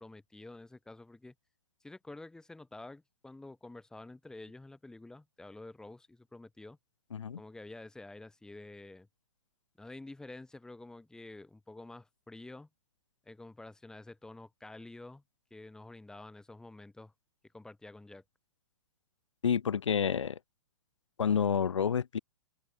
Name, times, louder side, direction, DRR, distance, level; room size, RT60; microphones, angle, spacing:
voice 1, 0.0-1.3 1.8-6.8 7.4-9.1 9.8-12.7 13.2-15.2 15.5-17.1 17.5-18.2, left 2 dB, 5° left, 7.8 m, -49 dB
voice 2, 19.4-20.4 21.2-22.2, left 7 dB, 85° left, 5.1 m, -29 dB
hypercardioid pair, 145°, 15 cm